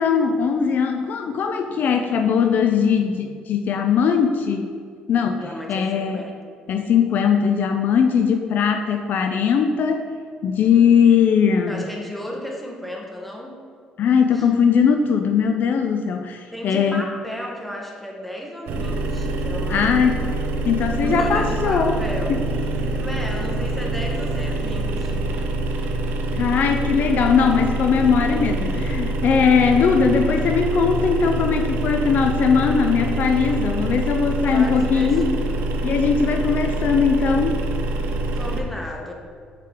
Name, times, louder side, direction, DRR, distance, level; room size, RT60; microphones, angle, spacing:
voice 1, 0.0-4.7 5.1-6.2 6.7-10.1 10.4-11.9 14.0-17.0 19.7-20.3 20.6-22.0 22.3-22.4 26.3-35.3 35.8-37.6, left 6 dB, 65° left, 5 dB, 0.4 m, -19 dB
voice 2, 5.4-6.3 11.7-13.6 14.3-14.5 16.5-19.9 21.0-25.3 34.5-35.4 38.3-39.1, equal, 5° left, -1 dB, 1.3 m, -34 dB
sound 1, 18.7-38.6, right 2 dB, 75° right, 0.6 m, -25 dB
5.8 x 4.9 x 3.6 m, 2.1 s
supercardioid pair, 65°, 3 cm